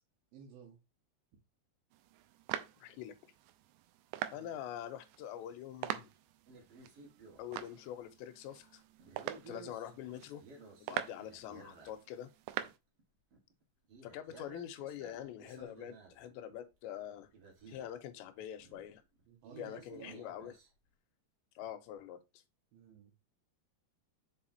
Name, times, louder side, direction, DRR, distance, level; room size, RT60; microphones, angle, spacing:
voice 1, 0.3-0.8 4.3-4.5 9.5-9.7 19.3-20.2 22.7-23.1, right 6 dB, 65° right, 2.9 m, -54 dB
sound 1, 1.9-12.8, right 13 dB, 80° right, 2.8 m, -45 dB
voice 2, 2.8-3.1 4.3-6.1 7.4-8.8 9.5-10.4 10.8-12.3 14.0-17.3 17.7-19.0 19.6-20.5 21.6-22.4, left 10 dB, 90° left, 3.0 m, -45 dB
sound 2, 6.5-7.5 8.0-8.2 9.0-12.3 12.5-12.7 13.0-13.1 13.3-13.6 13.9-16.5 17.0-17.1 17.3-18.1 18.6-20.7, right 4 dB, 45° right, 2.1 m, -55 dB
7.0 x 4.9 x 2.8 m
omnidirectional pair, 5.1 m